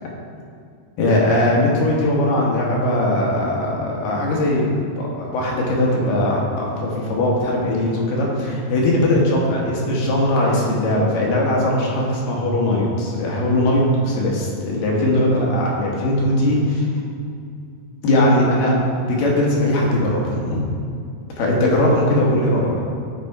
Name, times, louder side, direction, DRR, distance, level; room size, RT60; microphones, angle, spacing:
voice 1, 1.0-4.7 5.0-16.9 18.0-20.7 21.4-22.8, left 1 dB, 75° left, -3 dB, 2.9 m, -19 dB
11.5 x 4.1 x 4.6 m, 2.4 s
omnidirectional pair, 4.1 m